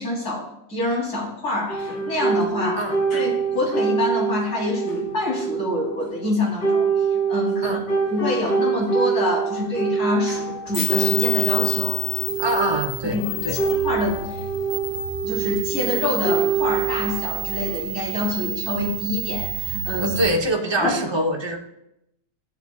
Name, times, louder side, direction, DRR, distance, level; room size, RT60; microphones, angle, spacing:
voice 1, 0.0-2.8 3.1-7.8 8.1-12.3 13.0-13.4 13.7-14.4 15.2-20.2 20.8-20.9, left 2 dB, 55° left, -3 dB, 3.4 m, -26 dB
sound 1, 1.7-17.9, right 6 dB, 75° left, 2.4 m, -25 dB
sound 2, 10.7-20.3, right 1 dB, 15° left, 2.8 m, -29 dB
voice 2, 12.4-13.2 13.4-13.6 20.0-21.6, right 1 dB, 40° right, 2 dB, 0.3 m, -24 dB
15.0 x 7.2 x 2.3 m, 0.82 s
omnidirectional pair, 2.0 m